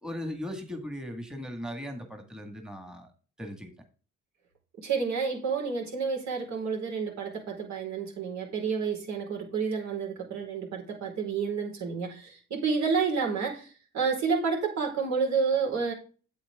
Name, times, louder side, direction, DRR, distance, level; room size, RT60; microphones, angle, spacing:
voice 1, 0.0-3.1 3.4-3.7, equal, ahead, 4 dB, 1.8 m, -38 dB
voice 2, 4.8-15.9, right 5 dB, 65° right, 0 dB, 4.6 m, -30 dB
8.6 x 8.2 x 3.6 m, 0.38 s
cardioid pair, 90°, 30 cm